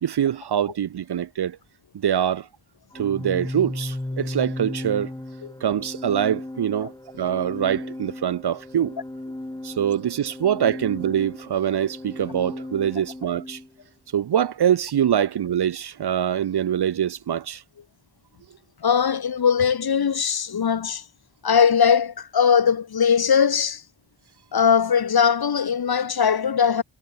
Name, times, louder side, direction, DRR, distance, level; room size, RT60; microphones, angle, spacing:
voice 1, 0.0-1.6 1.9-2.5 2.9-5.1 5.6-6.9 7.2-8.9 9.6-13.6 14.1-17.6, right 9 dB, 55° right, 0.5 m, -24 dB
Organ, 2.9-13.7, left 1 dB, 10° left, 0.8 m, -35 dB
voice 2, 18.8-21.0 21.4-23.8 24.5-26.8, left 7 dB, 50° left, 0.7 m, -20 dB
wide cardioid pair, 65°, 50 cm